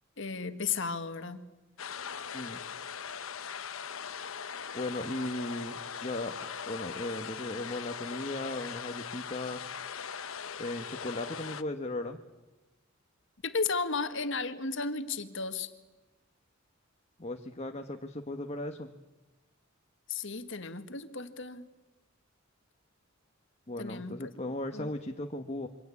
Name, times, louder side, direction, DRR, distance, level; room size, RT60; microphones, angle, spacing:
voice 1, 0.2-1.4 13.4-15.7 20.1-21.7 23.8-24.3 24.7-24.9, left 4 dB, 65° left, 10 dB, 1.7 m, -34 dB
sound 1, 1.8-11.6, left 7 dB, 85° left, 1.1 m, -40 dB
voice 2, 4.7-9.7 10.6-12.2 17.2-18.9 23.7-25.7, left 1 dB, 30° left, 4 dB, 1.3 m, -37 dB
27.5 x 24.5 x 8.5 m, 1.1 s
head